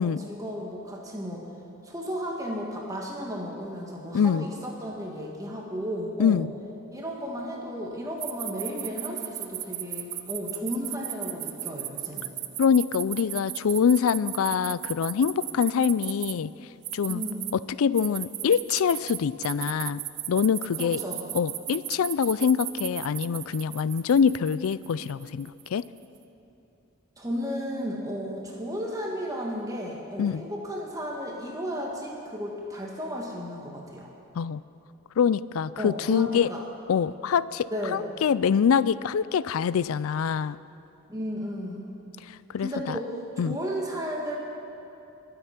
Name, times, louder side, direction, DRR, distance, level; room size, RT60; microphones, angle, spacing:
voice 1, 0.0-1.4 1.8-6.4 6.9-12.3 17.1-17.5 20.7-21.2 27.2-34.1 35.8-36.6 37.7-38.0 41.1-41.9 42.6-43.1 43.4-44.4, equal, 15° right, -1 dB, 1.5 m, -34 dB
voice 2, 4.1-4.5 6.2-6.5 12.6-16.5 16.9-17.2 17.5-20.0 20.3-21.0 21.3-25.8 30.2-30.4 34.4-34.6 35.2-36.5 36.9-40.6 42.3-43.0 43.4-43.6, left 7 dB, 75° left, 18 dB, 0.4 m, -25 dB
sound 1, 8.2-16.3 16.8-17.5 18.0-25.8, right 15 dB, 50° right, 0.6 m, -35 dB
22.5 x 7.9 x 5.8 m, 2.9 s
head